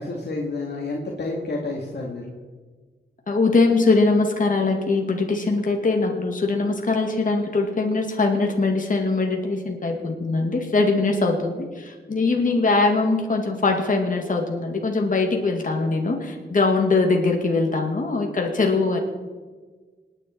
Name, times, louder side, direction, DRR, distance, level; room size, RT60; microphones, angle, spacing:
voice 1, 0.0-2.4, left 2 dB, 60° left, -2 dB, 2.3 m, -30 dB
voice 2, 3.3-19.0, left 3 dB, 45° left, 1 dB, 2.3 m, -22 dB
26.5 x 9.8 x 4.6 m, 1.4 s
wide cardioid pair, 125°, 19 cm